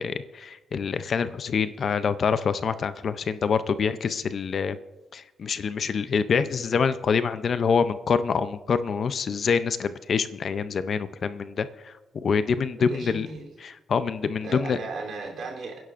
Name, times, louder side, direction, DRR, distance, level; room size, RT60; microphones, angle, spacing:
voice 1, 0.0-4.8 5.1-11.9 12.2-13.3 13.6-14.8, left 6 dB, 45° left, 12 dB, 0.5 m, -26 dB
voice 2, 12.8-13.5 14.4-15.8, right 3 dB, 60° right, 0 dB, 3.2 m, -36 dB
28.0 x 10.5 x 2.5 m, 1.1 s
wide cardioid pair, 155°, 0 cm